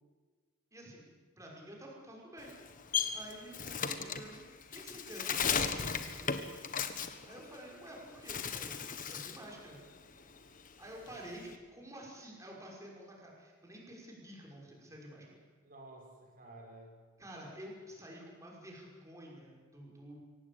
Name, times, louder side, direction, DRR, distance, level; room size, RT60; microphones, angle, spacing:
voice 1, 0.7-1.1 1.4-2.5 3.1-4.4 4.7-6.5 7.2-9.8 10.8-15.4 17.2-20.2, right 1 dB, 15° right, -2 dB, 5.6 m, -50 dB
Bird, 2.4-7.9 8.2-9.5 9.8-11.5, left 6 dB, 40° left, 1.4 m, -36 dB
voice 2, 3.5-3.9 11.0-11.1 15.6-17.0, right 2 dB, 40° right, 0 dB, 6.5 m, -54 dB
24.0 x 17.5 x 8.7 m, 1.5 s
head